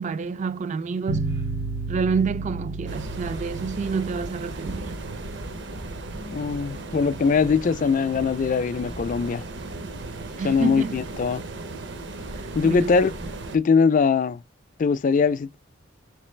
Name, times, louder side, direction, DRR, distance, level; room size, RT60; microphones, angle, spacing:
voice 1, 0.0-1.3 1.9-4.9 10.4-11.0 12.4-12.9, right 5 dB, 40° right, 0.3 m, -28 dB
sound 1, 1.1-6.2, right 3 dB, 85° right, 2.0 m, -33 dB
sound 2, 2.9-13.6, right 2 dB, 60° right, 0.7 m, -36 dB
voice 2, 6.3-9.4 10.4-11.4 12.5-13.1 13.5-14.4 14.8-15.6, left 5 dB, 40° left, 0.3 m, -21 dB
4.4 x 3.2 x 3.2 m
head